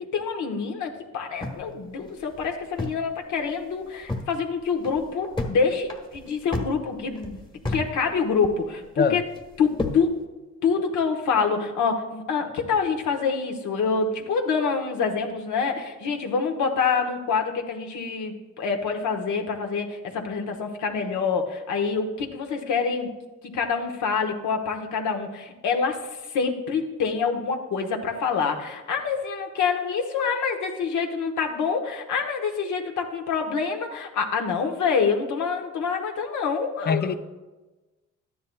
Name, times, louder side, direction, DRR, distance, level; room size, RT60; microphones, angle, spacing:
voice 1, 0.0-9.2 9.6-9.7 9.9-10.2 10.6-23.1 23.5-26.0 26.3-37.1, left 5 dB, 75° left, 1.2 m, -26 dB
sound 1, 1.4-3.1 3.4-3.5 3.8-4.3 4.7-5.6 5.9-7.9 8.2-8.9 9.3-10.1, left 2 dB, 15° left, 1.2 m, -32 dB
voice 2, 9.0-9.2 36.9-37.1, left 5 dB, 35° left, 0.5 m, -23 dB
12.5 x 10.0 x 2.3 m
cardioid pair, 90°, 30 cm